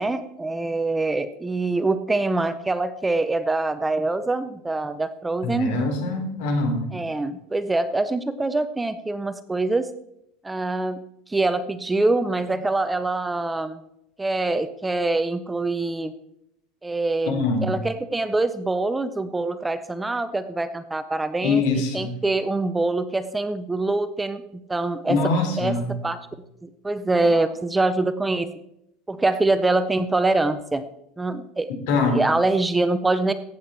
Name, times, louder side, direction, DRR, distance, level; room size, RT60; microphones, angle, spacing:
voice 1, 0.0-5.7 6.9-9.9 10.4-13.8 14.2-16.1 16.8-24.4 24.7-25.2 25.6-25.8 26.0-26.2 26.6-28.5 29.1-30.9 31.2-31.7 32.1-33.3, right 2 dB, 5° right, 11 dB, 0.4 m, -24 dB
voice 2, 5.4-6.9 17.2-17.7 21.4-22.1 25.1-25.9 31.9-32.2, left 3 dB, 65° left, 4 dB, 3.3 m, -23 dB
15.0 x 8.3 x 4.3 m, 0.80 s
cardioid pair, 170°, 0 cm